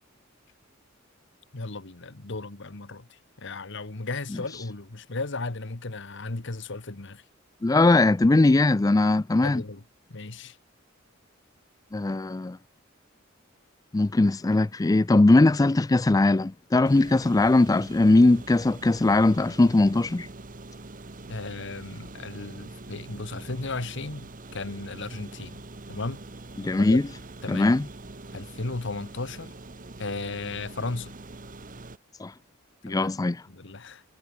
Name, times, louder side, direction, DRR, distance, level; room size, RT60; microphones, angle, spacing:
voice 1, 1.5-7.2 9.4-9.8 10.1-10.6 21.3-25.6 25.9-26.2 26.8-27.0 27.4-27.7 28.3-29.5 30.0-31.1 32.9-33.1 33.5-34.0, left 3 dB, 65° left, 1.5 m, -35 dB
voice 2, 7.6-9.6 11.9-12.6 13.9-20.3 26.6-27.0 27.5-27.8 32.2-32.3 32.8-33.4, left 2 dB, 20° left, 0.4 m, -20 dB
sound 1, 16.8-32.0, right 2 dB, 40° right, 1.3 m, -44 dB
head